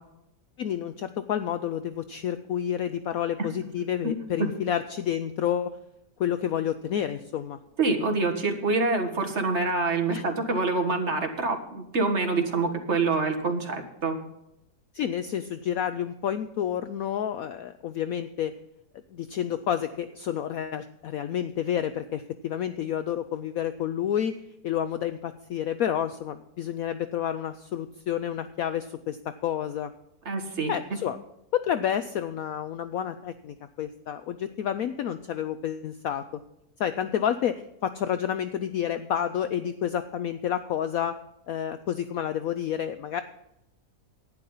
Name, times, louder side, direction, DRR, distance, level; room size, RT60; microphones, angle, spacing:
voice 1, 0.6-5.8 6.2-7.6 10.1-10.2 14.9-18.5 19.1-24.4 24.6-29.9 30.7-31.2 31.5-36.4 36.8-41.2 41.5-43.2, left 10 dB, 65° left, 11 dB, 0.9 m, -29 dB
voice 2, 7.8-14.2 30.3-30.7, right 3 dB, 40° right, 5 dB, 1.8 m, -26 dB
11.5 x 9.8 x 5.5 m, 0.85 s
omnidirectional pair, 1.8 m